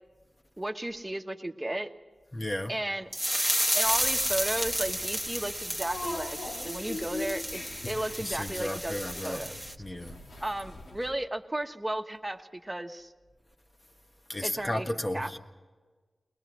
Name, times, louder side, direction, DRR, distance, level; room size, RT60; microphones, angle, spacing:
voice 1, 0.6-1.9 2.7-3.1 3.7-6.4 6.6-9.6 10.4-13.1 14.4-14.9 15.1-15.4, right 1 dB, 20° right, 6 dB, 1.3 m, -34 dB
voice 2, 2.3-2.7 8.2-9.4 9.8-10.1 14.3-15.4, left 1 dB, 30° left, 4 dB, 1.6 m, -33 dB
sound 1, 3.1-9.8, equal, 5° left, 1.6 m, -32 dB
sound 2, 3.8-11.1, left 2 dB, 85° left, 1.5 m, -42 dB
22.0 x 19.5 x 6.2 m, 1.4 s
cardioid pair, 50°, 0 cm